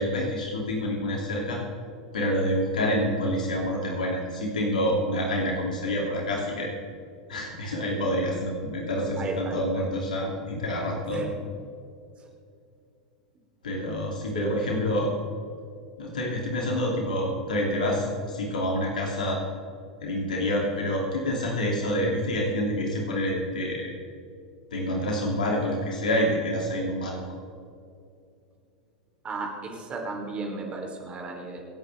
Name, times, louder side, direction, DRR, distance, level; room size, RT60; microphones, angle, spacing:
voice 1, 0.0-1.6 2.1-6.7 7.3-11.3 13.6-15.1 16.0-19.4 20.0-23.9 24.7-27.2, equal, 80° left, -1 dB, 2.9 m, -27 dB
voice 2, 9.2-9.6 11.1-11.3 14.3-15.0 29.2-31.6, right 3 dB, 30° right, 1 dB, 3.6 m, -34 dB
26.0 x 9.0 x 3.6 m, 2.4 s
hypercardioid pair, 90°, 4 cm